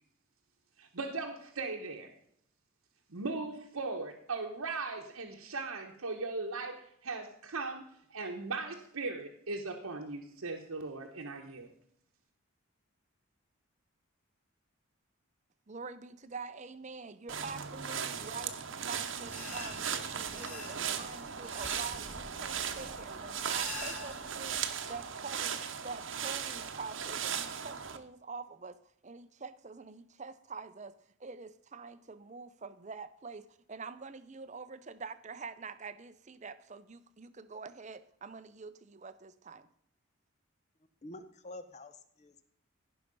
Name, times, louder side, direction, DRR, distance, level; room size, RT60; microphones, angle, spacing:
voice 1, 0.8-2.1 3.1-11.7, right 3 dB, 85° right, 1 dB, 1.1 m, -38 dB
voice 2, 15.7-18.6 18.9-24.6 24.9-30.9 31.2-39.7, right 4 dB, 35° right, 12 dB, 0.6 m, -46 dB
sound 1, 17.3-28.0, right 7 dB, 60° right, 1.0 m, -37 dB
sound 2, 19.2-24.6, left 1 dB, 5° left, 2.9 m, -47 dB
voice 3, 41.0-42.5, left 1 dB, 30° left, 10 dB, 0.8 m, -48 dB
15.5 x 5.8 x 5.3 m, 0.68 s
head